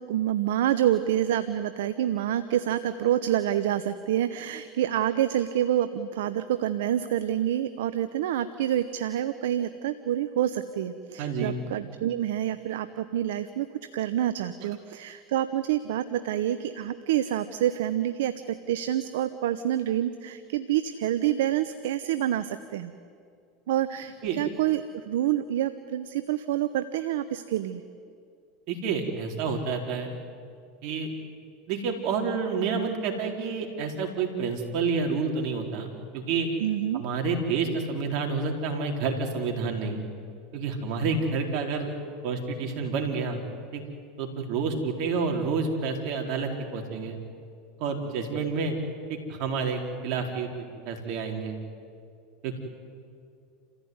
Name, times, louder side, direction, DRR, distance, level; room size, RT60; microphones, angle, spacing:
voice 1, 0.0-13.7 13.9-22.9 23.7-27.8 36.6-37.0, right 11 dB, 75° right, 11 dB, 0.9 m, -27 dB
voice 2, 11.2-11.6 24.2-24.4 28.7-30.1 30.8-31.1 31.7-36.5 36.9-40.0 40.5-41.9 42.2-43.4 43.7-43.8 44.2-47.1 47.8-48.8 49.1-50.5 50.8-51.6 52.4-52.6, right 4 dB, 60° right, 2 dB, 4.3 m, -29 dB
28.5 x 15.5 x 9.6 m, 2.3 s
hypercardioid pair, 90°, 0 cm